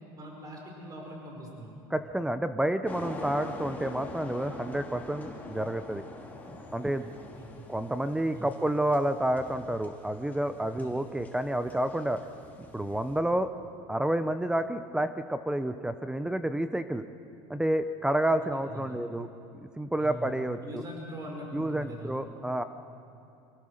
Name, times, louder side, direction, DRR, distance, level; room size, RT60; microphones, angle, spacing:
voice 1, 0.2-1.8 6.8-7.4 8.3-8.5 10.7-10.9 18.4-19.0 20.0-20.3 20.6-22.1, equal, 30° right, 0 dB, 5.3 m, -42 dB
voice 2, 1.9-6.0 6.7-7.0 7.7-12.2 12.7-13.5 13.9-17.1 17.5-19.3 19.8-20.8 21.5-22.6, right 1 dB, 5° right, 10 dB, 0.7 m, -29 dB
sound 1, 2.9-13.2, left 2 dB, 15° left, 2.9 m, -44 dB
25.5 x 16.5 x 6.5 m, 2.8 s
supercardioid pair, 120°, 12 cm